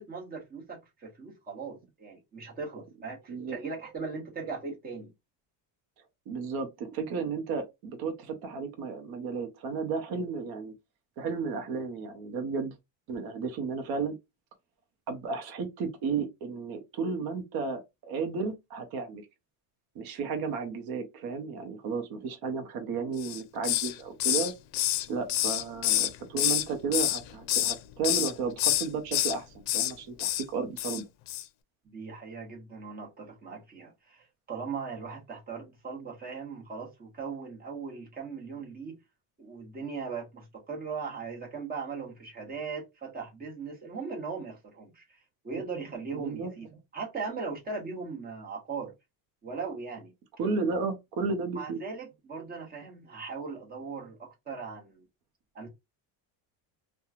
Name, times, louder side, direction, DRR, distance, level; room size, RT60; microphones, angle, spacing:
voice 1, 0.0-5.1 31.8-39.0 39.4-45.2 45.4-46.7 46.9-48.9 49.4-50.1 51.5-55.0 55.5-55.7, right 5 dB, 20° right, 1.0 m, -39 dB
voice 2, 6.3-10.7 11.2-12.7 13.1-14.2 15.1-19.2 19.9-24.5 25.1-31.0 46.1-46.5 50.4-51.8, right 5 dB, 55° right, 0.7 m, -33 dB
Hiss, 23.2-23.9 24.2-26.7 26.9-27.8 28.0-28.3 28.6-29.3 29.7-29.9 30.2-30.4 30.8-31.0 31.3-31.4, left 14 dB, 70° left, 0.5 m, -27 dB
3.0 x 2.2 x 2.4 m
cardioid pair, 160°, 46 cm